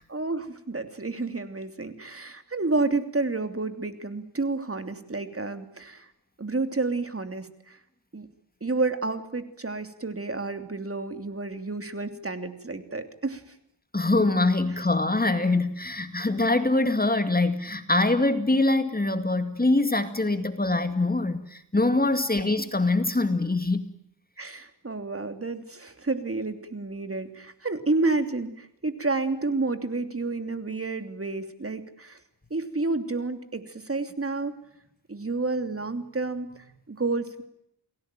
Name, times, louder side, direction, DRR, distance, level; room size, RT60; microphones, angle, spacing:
voice 1, 0.1-6.1 6.4-7.8 8.1-8.3 8.6-13.5 24.4-32.2 32.5-34.6 35.1-37.4, right 3 dB, 35° right, 3.0 m, -30 dB
voice 2, 13.9-23.8, left 2 dB, 20° left, 2.3 m, -24 dB
30.0 x 20.0 x 9.1 m
wide cardioid pair, 85°, 41 cm